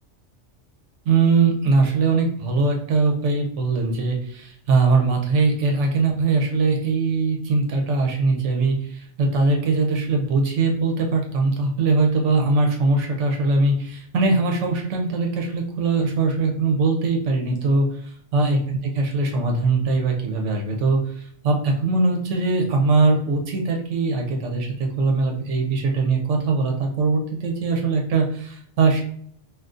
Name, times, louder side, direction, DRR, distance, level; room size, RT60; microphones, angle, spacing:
voice 1, 1.1-29.0, right 3 dB, 80° right, 2 dB, 0.9 m, -21 dB
3.8 x 2.4 x 2.4 m, 0.64 s
omnidirectional pair, 1.2 m